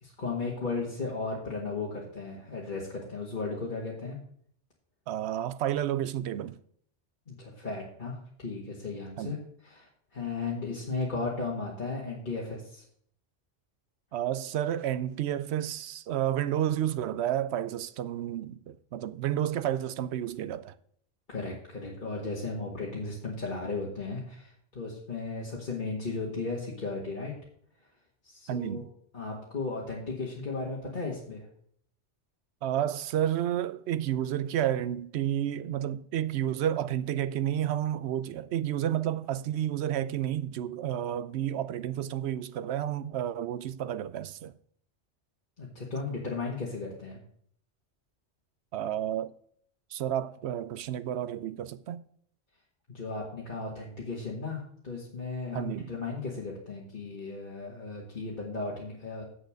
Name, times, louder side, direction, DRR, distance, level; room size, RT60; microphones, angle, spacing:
voice 1, 0.0-4.2 7.3-9.4 9.6-12.8 21.3-27.3 28.2-28.9 29.1-31.5 45.6-47.2 52.9-59.2, left 3 dB, 45° left, 1.8 m, -35 dB
voice 2, 5.1-6.5 9.2-9.4 14.1-20.7 28.5-28.9 32.6-44.5 48.7-49.3 49.9-52.0 55.5-56.0, right 11 dB, 70° right, 0.8 m, -31 dB
7.8 x 6.5 x 6.3 m
omnidirectional pair, 1.2 m